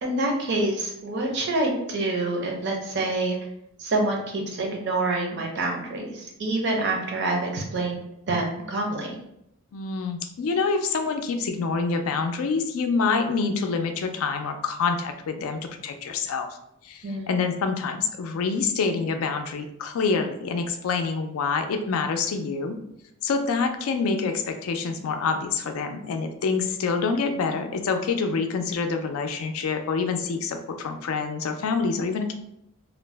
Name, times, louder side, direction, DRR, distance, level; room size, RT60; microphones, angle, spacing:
voice 1, 0.0-3.4 3.8-9.1 17.0-17.3, right 2 dB, 50° right, 0 dB, 0.6 m, -27 dB
voice 2, 9.7-16.5 16.8-22.8 23.2-32.3, left 4 dB, 65° left, 6 dB, 0.3 m, -26 dB
2.5 x 2.0 x 3.2 m, 0.79 s
head